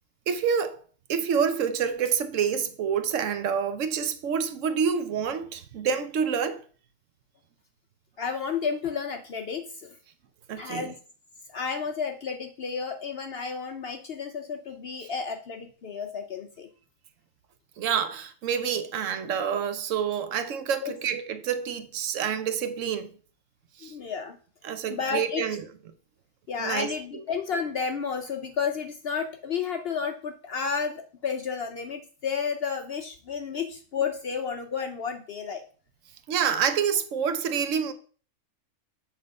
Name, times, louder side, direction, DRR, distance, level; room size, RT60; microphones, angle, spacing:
voice 1, 0.3-0.8 1.1-6.6 10.5-10.9 17.8-23.1 23.8-23.9 24.6-25.6 26.6-26.9 36.3-37.9, right 7 dB, 60° right, 0.9 m, -27 dB
voice 2, 8.2-10.0 10.6-10.9 11.5-16.7 20.8-20.9 23.8-24.4 24.9-25.4 26.5-35.6, left 6 dB, 65° left, 0.6 m, -31 dB
7.3 x 3.6 x 5.2 m
omnidirectional pair, 1.7 m